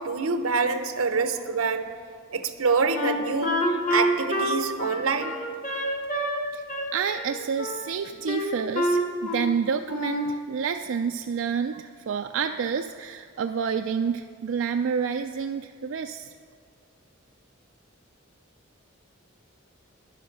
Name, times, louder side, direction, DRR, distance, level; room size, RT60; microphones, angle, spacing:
voice 1, 0.0-1.9 2.3-3.6 3.9-5.3, right 4 dB, 90° right, 9 dB, 0.9 m, -26 dB
Wind instrument woodwind instrument, 2.9-6.4 6.7-7.8 8.3-9.5 9.9-10.3, equal, 40° left, 1.2 m, -27 dB
voice 2, 6.9-16.3, right 6 dB, 65° right, 7 dB, 0.3 m, -29 dB
10.5 x 10.0 x 6.0 m, 2.1 s
head